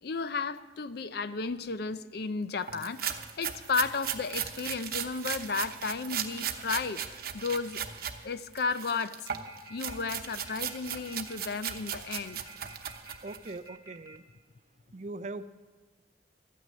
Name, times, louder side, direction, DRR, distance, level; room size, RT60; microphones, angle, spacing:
voice 1, 0.0-7.9 8.2-9.3 9.7-12.5, left 4 dB, 60° left, 14 dB, 0.5 m, -33 dB
sound 1, 2.7-8.2 8.5-13.5, right 9 dB, 60° right, 0.9 m, -37 dB
sound 2, 9.3-14.2, right 1 dB, 20° right, 1.3 m, -50 dB
voice 2, 13.2-14.2 14.9-15.5, right 2 dB, 40° right, 12 dB, 0.5 m, -40 dB
13.0 x 9.3 x 8.4 m, 1.3 s
head